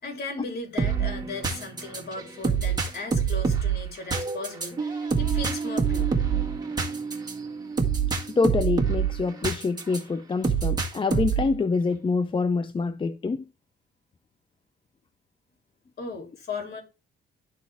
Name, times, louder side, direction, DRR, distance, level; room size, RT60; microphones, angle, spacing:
voice 1, 0.0-6.1 16.0-16.8, left 3 dB, 55° left, 3.5 m, -37 dB
sound 1, 0.8-10.0 10.4-11.6, right 6 dB, 20° right, 1.8 m, -26 dB
voice 2, 8.4-13.4, left 4 dB, 25° left, 0.5 m, -26 dB
12.5 x 4.2 x 3.4 m
cardioid pair, 90°, 20 cm